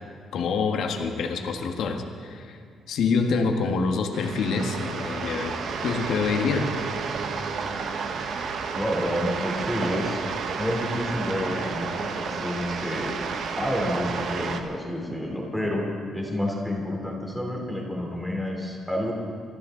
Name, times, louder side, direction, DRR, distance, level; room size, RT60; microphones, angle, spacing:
voice 1, 0.3-2.6 2.9-5.6 5.8-6.7, left 4 dB, 75° left, 4 dB, 1.5 m, -26 dB
sound 1, 4.1-14.6, right 5 dB, 65° right, 1.3 m, -31 dB
voice 2, 8.7-10.2 10.6-13.1 13.6-15.9 16.1-19.1, left 1 dB, 5° right, -2 dB, 3.5 m, -29 dB
25.0 x 14.0 x 3.9 m, 2.1 s
cardioid pair, 90°, 0 cm